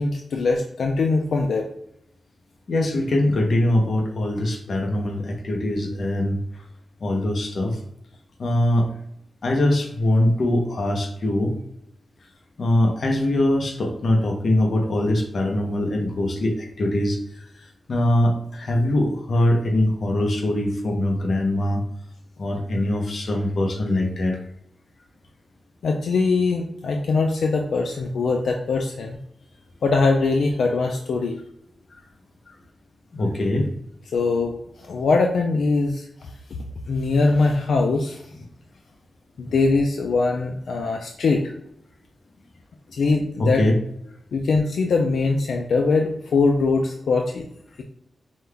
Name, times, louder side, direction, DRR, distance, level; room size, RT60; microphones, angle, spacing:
voice 1, 0.0-1.6 25.8-29.2 29.8-31.4 34.1-36.0 36.9-38.2 39.4-41.4 42.9-43.6 44.3-47.4, left 3 dB, 80° left, 2 dB, 0.4 m, -22 dB
voice 2, 2.7-6.4 7.0-7.8 8.4-8.9 9.4-11.6 12.6-17.2 17.9-21.8 22.4-24.4 32.5-32.6 33.1-33.7 39.4-39.5 43.4-43.7, left 1 dB, 55° left, 2 dB, 0.8 m, -22 dB
5.3 x 2.2 x 3.3 m, 0.75 s
wide cardioid pair, 145°, 0 cm